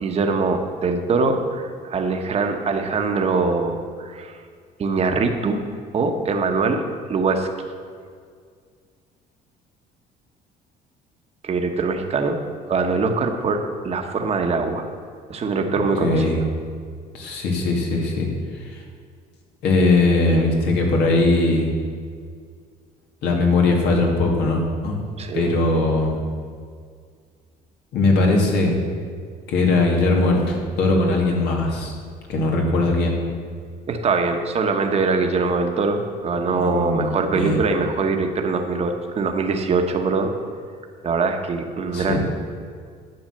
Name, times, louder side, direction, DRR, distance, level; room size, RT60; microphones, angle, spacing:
voice 1, 0.0-4.3 4.8-5.6 5.9-6.8 7.1-7.7 11.4-12.4 12.7-14.9 15.3-16.5 25.2-25.6 33.9-40.3 41.0-42.2, right 4 dB, 40° right, 4 dB, 1.2 m, -22 dB
voice 2, 16.0-16.4 17.1-18.3 18.5-18.8 19.6-21.7 23.2-25.0 25.3-26.2 27.9-28.8 29.5-31.9 32.3-33.2 36.5-37.6 41.9-42.2, left 2 dB, 80° left, 0 dB, 2.5 m, -20 dB
10.5 x 8.0 x 6.6 m, 2.1 s
cardioid pair, 110°, 17 cm